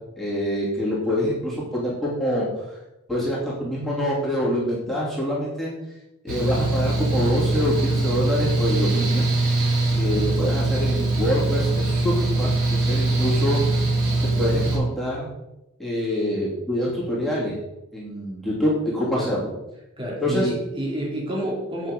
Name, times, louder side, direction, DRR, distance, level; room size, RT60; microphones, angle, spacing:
voice 1, 0.1-2.8 3.1-5.7 6.2-9.3 9.9-13.6 14.3-15.3 15.8-17.6 17.9-19.5 20.2-20.5, equal, ahead, -8 dB, 2.9 m, -25 dB
Mechanical fan, 6.3-14.8, right 2 dB, 85° right, 4.2 m, -22 dB
voice 2, 20.0-21.9, right 1 dB, 25° right, -2 dB, 2.5 m, -29 dB
7.7 x 6.2 x 6.7 m, 0.92 s
head